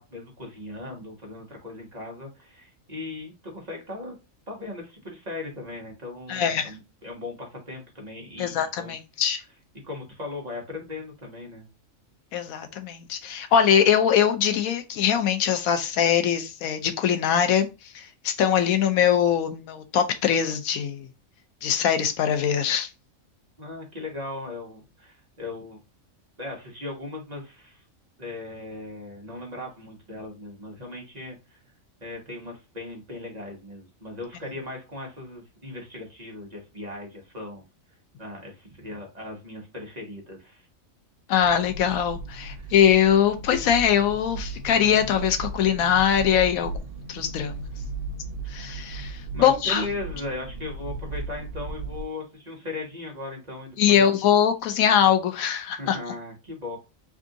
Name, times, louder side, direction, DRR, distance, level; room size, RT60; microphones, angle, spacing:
voice 1, 0.0-4.2 4.5-8.9 9.8-11.7 23.6-25.8 26.4-27.8 28.2-31.6 32.0-37.6 38.2-40.7 42.4-42.7 49.3-54.1 55.8-56.8, left 2 dB, 30° right, 1.2 m, -38 dB
voice 2, 6.3-6.7 8.4-9.4 12.3-21.1 21.6-22.9 41.3-47.5 48.5-49.9 53.8-56.0, left 9 dB, 85° left, 1.1 m, -22 dB
sound 1, 41.3-52.0, right 3 dB, 55° right, 0.8 m, -36 dB
3.5 x 2.6 x 3.7 m
omnidirectional pair, 1.4 m